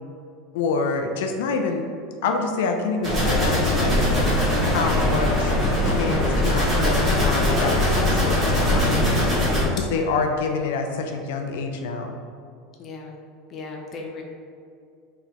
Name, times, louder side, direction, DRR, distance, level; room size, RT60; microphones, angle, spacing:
voice 1, 0.5-1.8 2.2-4.0 4.7-5.5 5.8-9.2 9.7-12.2, left 4 dB, 85° left, 4 dB, 0.4 m, -27 dB
sound 1, 3.0-9.6, left 1 dB, 15° right, 1.3 m, -21 dB
voice 2, 9.8-10.1 12.8-13.2 13.5-14.2, left 4 dB, 30° left, 0 dB, 0.5 m, -36 dB
4.0 x 3.2 x 2.9 m, 2.3 s
supercardioid pair, 165°, 0 cm